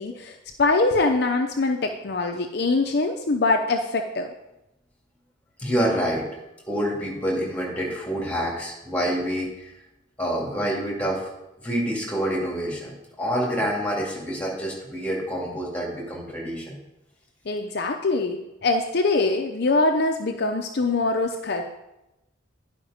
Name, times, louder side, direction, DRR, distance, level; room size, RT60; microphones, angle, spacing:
voice 1, 0.0-4.3 17.5-21.6, left 3 dB, 55° left, 4 dB, 0.6 m, -23 dB
voice 2, 5.6-6.2 6.7-9.7 10.2-11.3 11.6-16.7, equal, 5° left, -3 dB, 2.3 m, -27 dB
10.5 x 5.1 x 5.0 m, 0.93 s
head